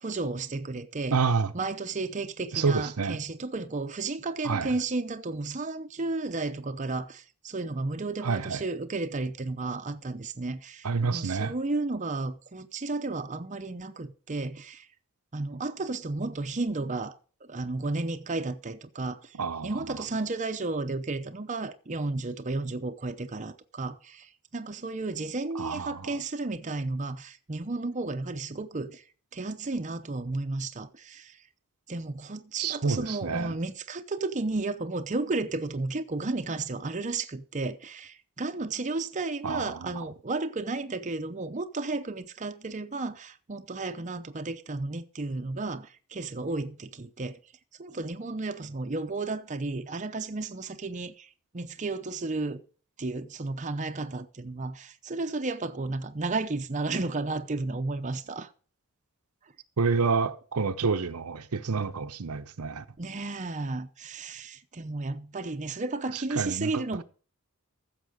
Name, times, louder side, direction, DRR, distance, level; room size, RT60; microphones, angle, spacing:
voice 1, 0.0-1.2 1.5-14.9 15.3-19.4 19.6-29.0 29.3-31.4 31.9-47.4 47.8-51.3 51.5-52.6 53.0-58.5 63.0-67.0, right 3 dB, 35° right, 0.7 m, -33 dB
voice 2, 1.1-1.5 2.5-3.2 4.4-4.7 8.2-8.6 10.8-11.5 19.3-20.0 25.5-26.2 32.6-33.5 39.4-39.9 59.8-62.8 66.1-66.8, right 4 dB, 85° right, 0.8 m, -28 dB
14.5 x 6.7 x 5.1 m
head